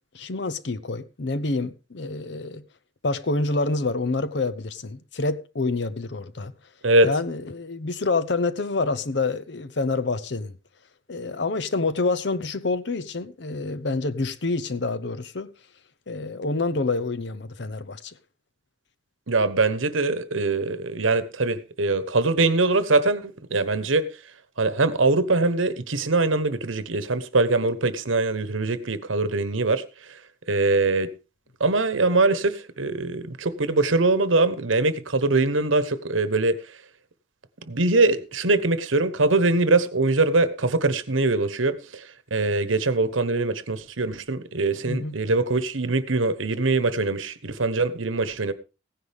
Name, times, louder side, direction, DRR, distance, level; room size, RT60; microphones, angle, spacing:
voice 1, 0.1-2.6 3.0-6.5 7.0-10.6 11.1-15.5 16.1-18.2 44.9-45.2, left 3 dB, 65° left, 0.8 m, -27 dB
voice 2, 19.3-24.1 24.6-30.2 30.5-31.1 31.6-36.6 37.7-48.5, right 3 dB, 90° right, 1.2 m, -23 dB
16.0 x 10.0 x 3.5 m
head